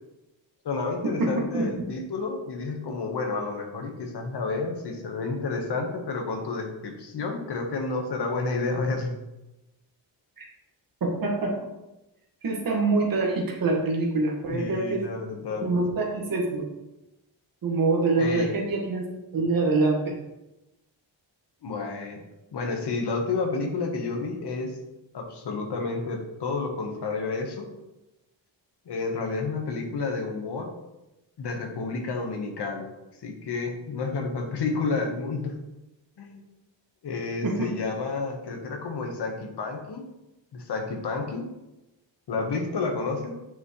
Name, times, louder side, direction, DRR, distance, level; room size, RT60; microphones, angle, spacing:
voice 1, 0.6-9.2 14.5-15.6 18.2-18.5 21.6-22.2 22.5-24.8 25.1-27.6 28.9-30.7 31.4-32.9 33.2-35.5 36.2-36.4 37.0-40.1 40.5-41.5 42.3-43.3, left 3 dB, 60° left, 3 dB, 1.3 m, -30 dB
voice 2, 1.2-1.7 10.4-10.5 11.0-11.6 12.4-15.0 15.6-16.6 17.6-19.0 19.3-20.1 37.4-37.7, right 3 dB, 45° right, -1 dB, 1.6 m, -25 dB
9.1 x 6.0 x 3.1 m, 0.95 s
wide cardioid pair, 180°, 47 cm